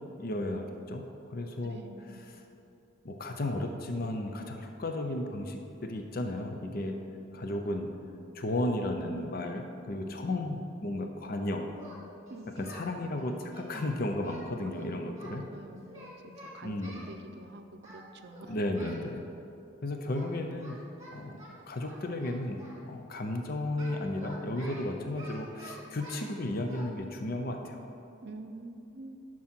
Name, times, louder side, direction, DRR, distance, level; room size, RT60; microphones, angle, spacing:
voice 1, 0.2-1.0 1.3-1.8 3.0-7.0 7.3-7.9 8.3-11.7 12.6-15.4 16.6-17.0 18.5-19.2 19.8-20.8 21.1-27.9, left 1 dB, 50° left, 4 dB, 0.6 m, -34 dB
voice 2, 1.7-2.3 12.3-13.0 14.7-18.7 28.2-29.2, right 2 dB, 60° right, 8 dB, 0.6 m, -47 dB
Singing, 11.8-12.8 13.2-15.3 15.8-17.1 17.8-18.1 18.3-19.1 20.1-20.3 20.6-22.8 23.8-26.3 26.7-26.8, right 1 dB, 20° right, 2.1 m, -49 dB
11.0 x 6.2 x 4.4 m, 2.7 s
head